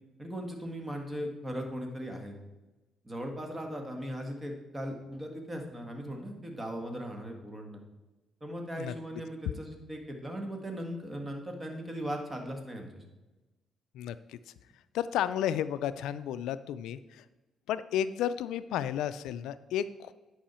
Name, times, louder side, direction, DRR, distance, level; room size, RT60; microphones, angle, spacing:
voice 1, 0.2-2.3 3.0-7.8 8.4-13.0, equal, 20° right, 3 dB, 1.7 m, -38 dB
voice 2, 13.9-14.4 14.9-17.2 17.7-20.1, left 10 dB, 90° left, 14 dB, 0.3 m, -32 dB
10.0 x 5.5 x 4.3 m, 1.1 s
cardioid pair, 90°, 0 cm